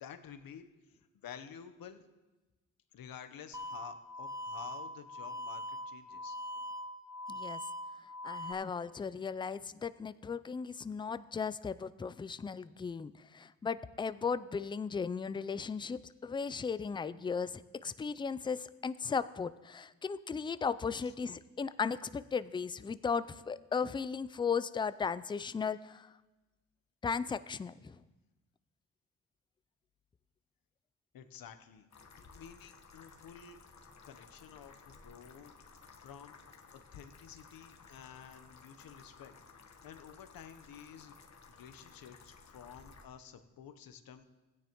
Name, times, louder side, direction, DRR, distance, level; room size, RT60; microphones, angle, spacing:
voice 1, 0.0-2.0 2.9-6.4 21.0-21.1 31.1-31.9 32.3-33.6 34.0-35.5 36.0-36.4 36.7-39.4 39.8-41.1 41.5-44.3, left 8 dB, 65° left, 9 dB, 1.0 m, -51 dB
sound 1, 3.5-8.5, left 1 dB, 10° right, 0.9 m, -42 dB
voice 2, 7.3-7.6 8.2-26.1 27.0-28.0, left 5 dB, 15° left, 15 dB, 0.3 m, -36 dB
sound 2, 31.9-43.1, left 4 dB, 45° left, 1.3 m, -57 dB
16.0 x 9.5 x 3.0 m, 1.1 s
supercardioid pair, 55°, 38 cm